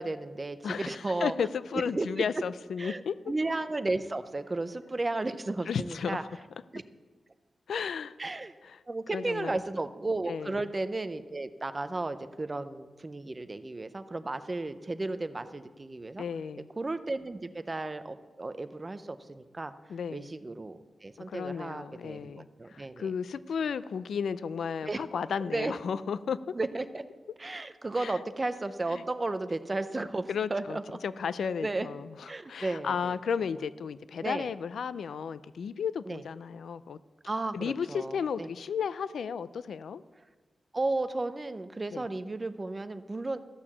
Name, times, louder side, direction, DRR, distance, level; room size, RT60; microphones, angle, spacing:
voice 1, 0.0-1.3 1.7-2.1 2.8-6.2 6.7-6.8 8.2-8.5 8.9-16.2 16.8-19.7 20.1-23.1 24.9-25.0 25.5-25.7 26.5-27.0 27.4-31.0 31.6-31.9 32.3-33.2 34.2-34.5 36.1-36.2 37.3-38.5 40.7-43.4, right 2 dB, 20° right, 11 dB, 0.5 m, -34 dB
voice 2, 0.6-3.2 5.7-6.2 7.7-8.2 8.6-8.8 9.1-9.6 10.3-10.6 16.2-16.7 19.9-20.3 21.3-26.5 28.0-28.2 28.9-29.0 30.3-37.0 37.5-40.0 41.9-42.1, left 6 dB, 85° left, 16 dB, 0.4 m, -34 dB
13.5 x 6.8 x 7.2 m, 1.4 s
wide cardioid pair, 170°, 0 cm